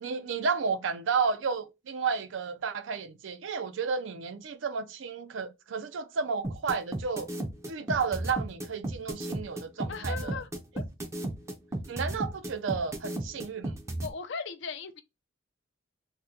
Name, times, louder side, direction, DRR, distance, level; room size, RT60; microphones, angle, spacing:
voice 1, 0.0-7.3 7.7-10.4 11.9-13.8, right 5 dB, 70° right, 0.4 m, -32 dB
sound 1, 6.4-14.1, right 1 dB, 15° right, 0.5 m, -33 dB
voice 2, 9.9-10.5 10.7-10.8 14.0-15.0, left 5 dB, 65° left, 0.5 m, -37 dB
2.9 x 2.1 x 3.7 m
head